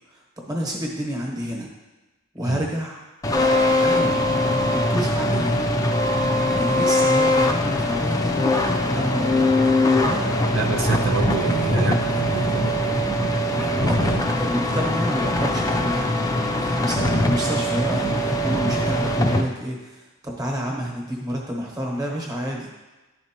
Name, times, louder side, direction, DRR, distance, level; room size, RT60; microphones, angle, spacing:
voice 1, 0.4-1.7 2.3-3.0 3.3-5.6 6.5-9.5 9.8-10.4 13.5-16.1 16.6-22.7, equal, 20° right, -1 dB, 1.1 m, -29 dB
sound 1, 3.2-19.4, left 1 dB, 15° left, 0.4 m, -21 dB
voice 2, 10.5-13.1 13.6-14.2, right 4 dB, 70° right, 3 dB, 0.5 m, -28 dB
11.0 x 4.4 x 2.9 m, 1.1 s
head